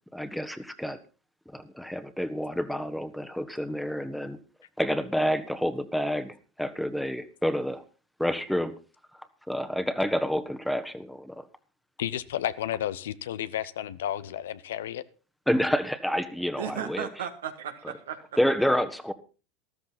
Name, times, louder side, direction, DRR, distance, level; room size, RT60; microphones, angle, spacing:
voice 1, 0.1-1.0 1.5-4.4 4.8-7.8 8.2-8.7 9.5-11.5 15.5-17.1 18.4-19.1, equal, ahead, 10 dB, 1.5 m, -28 dB
voice 2, 12.0-15.0, left 11 dB, 75° left, 16 dB, 0.8 m, -32 dB
voice 3, 16.6-18.2, right 9 dB, 80° right, 7 dB, 2.1 m, -35 dB
13.5 x 13.5 x 4.1 m, 0.34 s
hypercardioid pair, 85°, 0 cm